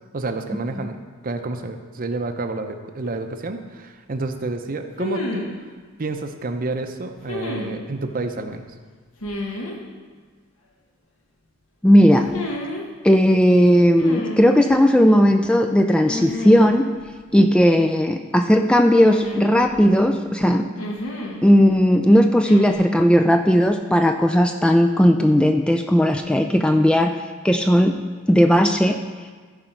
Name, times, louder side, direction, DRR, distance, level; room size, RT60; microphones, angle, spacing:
voice 1, 0.1-1.0 1.2-5.5 6.0-8.6, right 3 dB, 40° right, 7 dB, 0.7 m, -29 dB
sound 1, 3.0-3.1 5.0-5.6 7.3-7.8 9.2-9.8 12.3-12.8 14.0-14.6 16.1-16.7 17.0-17.1 19.0-19.9 20.8-21.4 22.4-22.7, left 1 dB, 75° left, 1.4 m, -30 dB
voice 2, 11.8-12.3 13.0-16.9 17.3-20.6 21.4-27.1 27.4-28.0 28.3-29.0, equal, 5° left, 5 dB, 0.3 m, -16 dB
15.0 x 5.2 x 4.5 m, 1.5 s
head